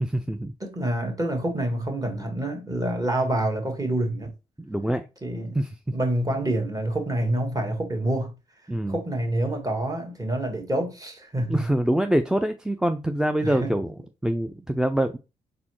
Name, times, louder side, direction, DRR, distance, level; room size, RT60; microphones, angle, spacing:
voice 1, 0.0-0.5 4.6-5.0 5.6-5.8 8.7-9.0 11.5-13.9 14.2-15.2, right 1 dB, 5° right, 0.4 m, -25 dB
voice 2, 0.6-4.3 5.2-5.6 5.9-8.3 8.9-11.7 13.4-13.7, right 1 dB, 25° right, 1.5 m, -27 dB
4.0 x 3.8 x 3.1 m
supercardioid pair, 50°, 15 cm